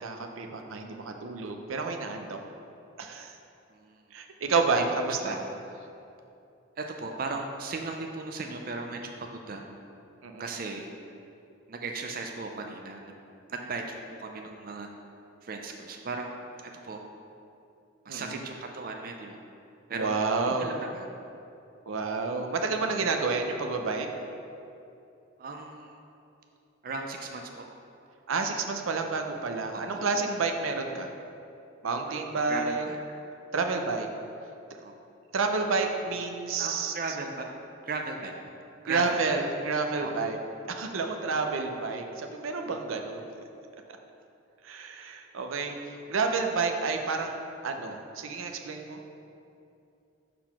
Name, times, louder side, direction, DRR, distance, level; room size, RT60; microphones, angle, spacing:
voice 1, 0.0-2.4 3.0-3.4 4.1-5.4 10.2-10.5 18.1-18.4 19.9-20.7 21.9-24.1 28.3-31.1 31.8-32.8 33.5-34.1 35.3-36.9 38.8-40.4 40.7-43.5 43.9-44.0 44.6-47.4 47.6-49.0, right 4 dB, 90° right, 4 dB, 0.6 m, -30 dB
voice 2, 3.7-4.0 4.7-4.9 5.2-5.4 6.8-9.7 10.4-10.9 11.7-13.1 13.5-14.9 15.4-16.4 16.6-17.0 18.0-19.4 19.9-20.1 20.6-21.1 25.4-26.0 26.8-27.6 29.7-30.0 32.1-32.2 32.5-33.0 34.8-34.9 36.6-37.4 37.8-38.3 38.8-39.2 40.0-40.1, right 3 dB, 45° right, 3 dB, 0.4 m, -37 dB
6.6 x 3.9 x 5.8 m, 2.7 s
head